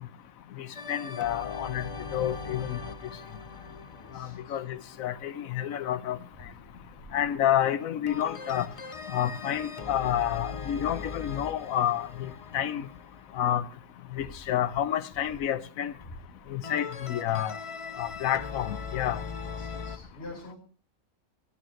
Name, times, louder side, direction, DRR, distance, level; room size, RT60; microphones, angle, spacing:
voice 1, 0.6-1.8 2.1-2.8 4.1-6.2 7.1-8.7 9.1-12.9 13.4-13.6 14.2-15.9 16.5-17.6 18.0-19.2, left 10 dB, 90° left, 1.2 m, -29 dB
sound 1, 0.8-5.5 8.1-13.9 16.6-20.0, left 5 dB, 30° left, 0.7 m, -40 dB
voice 2, 3.8-4.6 16.0-16.3 19.6-20.6, left 2 dB, 45° left, 6.7 m, -46 dB
14.0 x 9.2 x 4.5 m
omnidirectional pair, 1.4 m